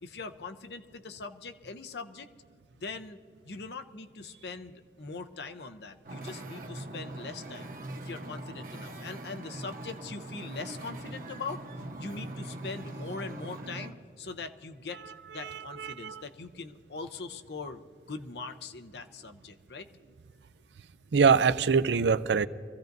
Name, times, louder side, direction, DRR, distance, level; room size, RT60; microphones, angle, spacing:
voice 1, 0.0-2.3 2.8-3.2 3.4-7.7 8.0-11.6 12.0-15.0 15.3-17.8 18.1-19.9, left 4 dB, 70° left, 0.7 m, -41 dB
Wind / Ocean, 6.0-13.9, right 1 dB, 50° right, 1.0 m, -41 dB
voice 2, 15.4-16.2 21.1-22.5, right 5 dB, 80° right, 0.5 m, -24 dB
23.5 x 15.5 x 2.6 m
head